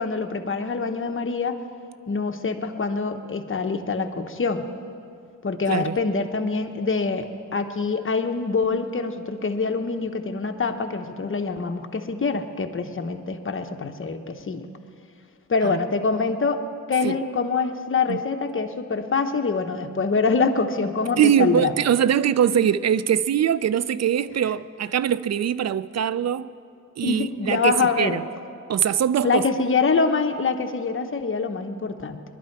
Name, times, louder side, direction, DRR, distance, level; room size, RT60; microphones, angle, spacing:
voice 1, 0.0-1.6 2.1-4.7 5.4-14.7 15.5-16.6 16.9-21.7 27.0-28.2 29.2-32.2, left 4 dB, 45° left, 1.1 m, -25 dB
voice 2, 21.2-26.5 27.0-28.2 28.7-29.4, right 9 dB, 60° right, 0.5 m, -22 dB
21.0 x 11.5 x 4.7 m
cardioid pair, 75°, 30 cm